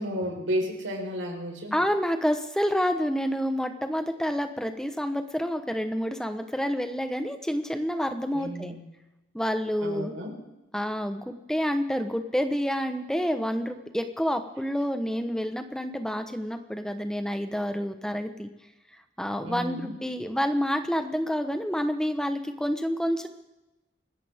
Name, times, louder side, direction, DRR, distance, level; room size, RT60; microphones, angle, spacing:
voice 1, 0.0-1.7 8.3-8.8 9.8-10.4 19.4-19.9, equal, 85° right, 1 dB, 4.3 m, -32 dB
voice 2, 1.7-8.7 9.3-10.1 10.7-18.5 19.2-23.3, equal, 5° left, 7 dB, 1.0 m, -28 dB
25.5 x 13.5 x 3.6 m, 0.98 s
head